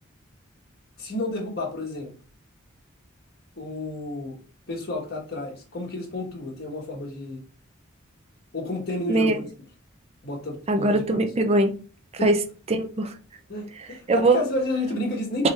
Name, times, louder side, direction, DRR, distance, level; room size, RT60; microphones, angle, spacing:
voice 1, 1.0-2.1 3.5-4.4 4.7-7.4 8.5-9.4 10.2-11.0 12.2-12.3 13.5-15.5, left 2 dB, 50° left, 1.4 m, -31 dB
voice 2, 10.7-11.7 12.2-12.4 12.7-13.1 14.1-14.4 15.4-15.5, right 2 dB, 30° right, 0.5 m, -21 dB
3.6 x 3.2 x 4.2 m
head